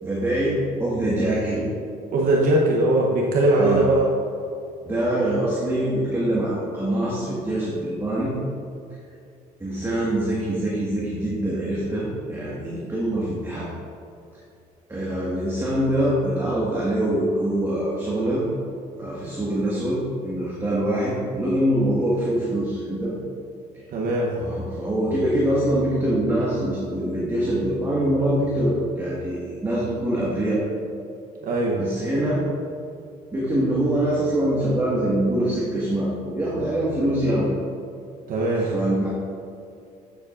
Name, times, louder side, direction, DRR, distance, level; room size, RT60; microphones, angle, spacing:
voice 1, 0.0-1.7 3.6-3.8 4.8-8.3 9.6-13.7 14.9-18.4 19.0-23.1 23.7-23.8 24.3-30.6 31.7-32.4 33.3-37.5 38.6-39.1, right 1 dB, 15° right, -7 dB, 1.8 m, -24 dB
voice 2, 2.1-4.1 23.9-24.3 31.4-31.8 38.3-38.7, right 2 dB, 60° right, -3 dB, 1.0 m, -20 dB
9.4 x 7.4 x 2.6 m, 2.6 s
cardioid pair, 100°, 16 cm